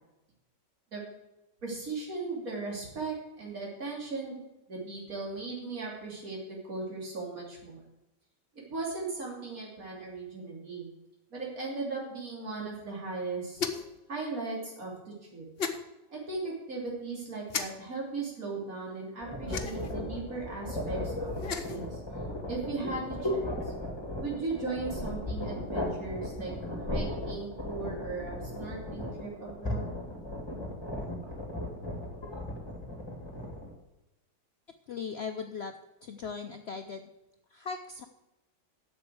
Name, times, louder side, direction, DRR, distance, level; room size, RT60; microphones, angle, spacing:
voice 1, 1.6-4.4 4.7-7.8 8.7-10.9 11.3-13.6 14.1-14.9 15.3-15.5 16.1-21.3 21.6-22.0 22.5-23.7 24.2-30.0, right 3 dB, 50° right, -3 dB, 3.5 m, -37 dB
sound 1, 13.6-14.0 15.6-15.8 17.5-17.7 19.5-20.0 21.3-21.8, left 5 dB, 45° left, 0.8 m, -34 dB
sound 2, 19.2-33.7, left 1 dB, 15° left, 2.1 m, -36 dB
voice 2, 34.9-35.7 36.0-37.1 37.5-38.0, left 5 dB, 70° left, 6 dB, 0.6 m, -38 dB
8.0 x 6.9 x 7.9 m, 0.96 s
omnidirectional pair, 1.8 m